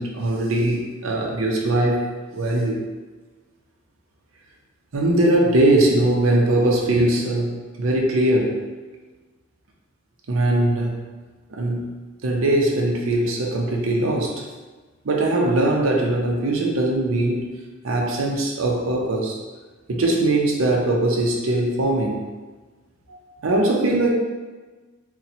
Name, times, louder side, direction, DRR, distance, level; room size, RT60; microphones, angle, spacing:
voice 1, 0.0-2.1 2.3-2.8 4.9-7.5 7.8-8.6 10.3-10.9 11.5-11.9 12.2-14.4 15.0-17.5 17.8-19.4 19.9-22.2 23.1-24.1, right 1 dB, 85° right, 0 dB, 0.6 m, -21 dB
2.8 x 2.2 x 4.0 m, 1.3 s
head